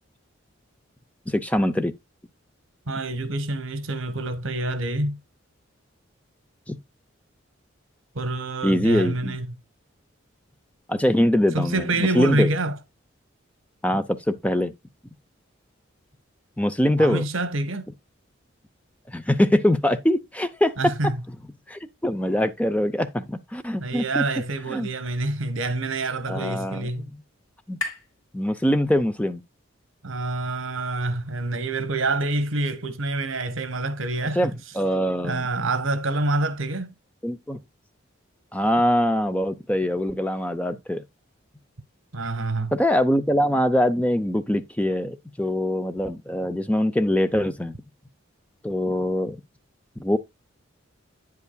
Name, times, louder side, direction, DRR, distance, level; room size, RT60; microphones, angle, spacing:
voice 1, 1.3-1.9 6.7-6.8 8.6-9.4 10.9-11.8 12.1-12.5 13.8-14.7 16.6-17.3 19.1-20.9 21.7-24.2 24.7-24.9 26.3-27.1 27.7-27.8 28.3-29.4 34.4-35.4 37.2-37.6 38.5-41.0 42.7-47.7 48.6-49.4 50.0-50.2, left 1 dB, 5° left, 0.5 m, -23 dB
voice 2, 2.9-5.2 8.1-9.6 11.5-12.8 17.0-17.9 20.8-21.2 23.8-27.1 30.0-34.6 35.2-36.9 42.1-42.7, right 2 dB, 80° right, 1.1 m, -27 dB
sound 1, 25.4-29.2, left 3 dB, 85° left, 2.1 m, -40 dB
9.5 x 8.3 x 2.2 m
head